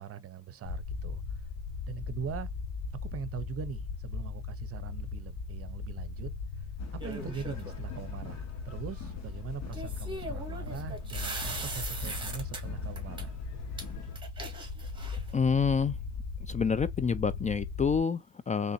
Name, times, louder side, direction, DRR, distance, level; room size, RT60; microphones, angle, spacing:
voice 1, 0.0-1.5 1.9-2.5 3.1-6.3 6.6-6.7 7.0-13.3, right 8 dB, 50° right, 0.7 m, -41 dB
sound 1, 0.6-18.0, left 4 dB, 85° left, 1.0 m, -38 dB
sound 2, 6.8-14.2, left 7 dB, 60° left, 1.2 m, -50 dB
sound 3, 7.0-7.7 9.7-12.6 13.0-13.2 13.8-13.9 14.1-15.3, right 2 dB, 15° right, 1.7 m, -39 dB
voice 2, 15.3-16.0 16.4-18.7, left 5 dB, 25° left, 0.4 m, -28 dB
3.8 x 3.3 x 2.6 m
cardioid pair, 90°, 30 cm